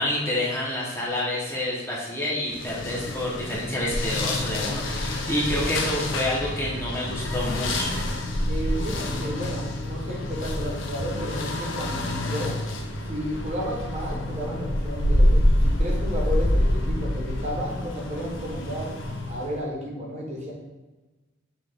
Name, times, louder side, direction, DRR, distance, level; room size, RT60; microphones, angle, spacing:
voice 1, 0.0-8.0, left 1 dB, 15° left, -5 dB, 0.8 m, -28 dB
sound 1, 2.5-19.6, left 1 dB, 75° left, 0.6 m, -27 dB
voice 2, 8.5-12.5 13.0-18.9 19.3-20.5, equal, 35° right, -3 dB, 0.9 m, -33 dB
5.7 x 2.4 x 3.5 m, 1.2 s
head